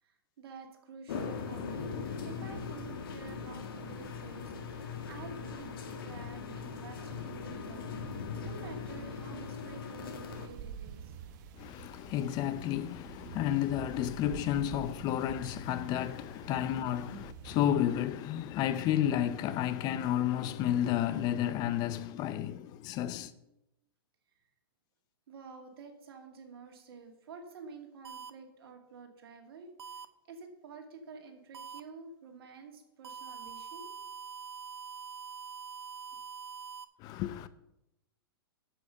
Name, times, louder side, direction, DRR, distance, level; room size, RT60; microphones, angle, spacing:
voice 1, 0.0-5.7 6.0-11.2 17.0-17.2 25.3-29.7 30.3-33.9 36.1-36.2, right 4 dB, 70° right, 2.5 m, -50 dB
sound 1, 1.1-10.5, left 5 dB, 65° left, 2.0 m, -40 dB
sound 2, 10.3-17.7, right 7 dB, 50° right, 1.2 m, -48 dB
voice 2, 11.6-23.3 37.0-37.5, left 11 dB, 30° left, 0.6 m, -31 dB
sound 3, 28.0-28.3 29.8-30.0 31.5-31.8 33.0-36.8, right 6 dB, 85° right, 0.9 m, -44 dB
8.3 x 7.4 x 6.5 m
hypercardioid pair, 135°, 13 cm